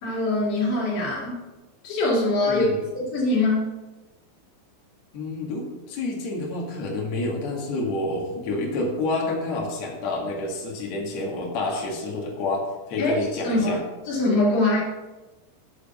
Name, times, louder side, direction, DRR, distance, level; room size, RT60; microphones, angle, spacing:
voice 1, 0.0-1.4 1.8-2.7 3.1-3.7 13.0-13.8 14.1-14.8, left 2 dB, 35° left, -7 dB, 3.0 m, -23 dB
voice 2, 2.4-2.8 5.1-12.6 12.9-13.8, left 2 dB, 60° left, -2 dB, 1.8 m, -28 dB
7.1 x 6.4 x 6.8 m, 1.1 s
omnidirectional pair, 5.9 m